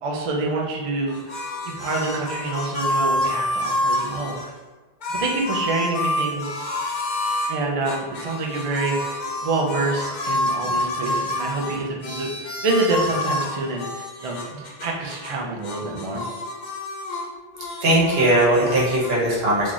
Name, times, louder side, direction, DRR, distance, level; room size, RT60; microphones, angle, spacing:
voice 1, 0.0-1.2 1.7-4.5 5.1-6.5 7.5-16.2, right 3 dB, 45° right, -1 dB, 0.4 m, -27 dB
sound 1, 1.1-4.5 5.0-7.5 7.8-15.4 15.6-17.3 17.5-19.1, left 1 dB, 55° left, 0.6 m, -28 dB
voice 2, 17.8-19.7, right 1 dB, 75° right, -5 dB, 1.2 m, -19 dB
3.0 x 2.4 x 3.8 m, 1.3 s
omnidirectional pair, 1.0 m